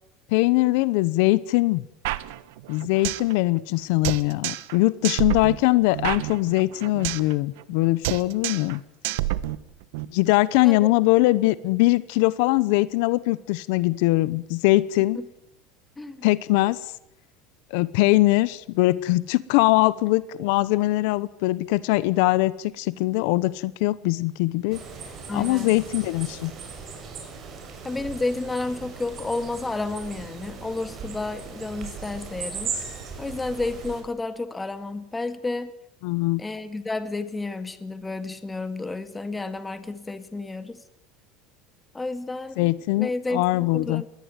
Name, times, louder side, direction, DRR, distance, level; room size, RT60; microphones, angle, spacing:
voice 1, 0.3-1.8 2.7-8.8 10.1-15.2 16.2-16.9 17.7-24.8 25.3-26.5 36.0-36.4 42.6-44.0, left 19 dB, 70° left, 18 dB, 0.8 m, -22 dB
sound 1, 2.0-3.3 3.6-3.7 4.0-4.8 5.0-7.3 7.6-7.8 8.0-8.8 9.0-10.0, right 16 dB, 80° right, 1.2 m, -29 dB
sound 2, 24.7-34.0, right 5 dB, 35° right, 6.7 m, -38 dB
voice 2, 25.3-25.8 27.8-32.7 33.2-35.7 36.4-40.8 41.9-44.1, left 3 dB, 10° left, 11 dB, 1.9 m, -31 dB
21.5 x 18.0 x 9.3 m, 0.78 s
cardioid pair, 145°, 0 cm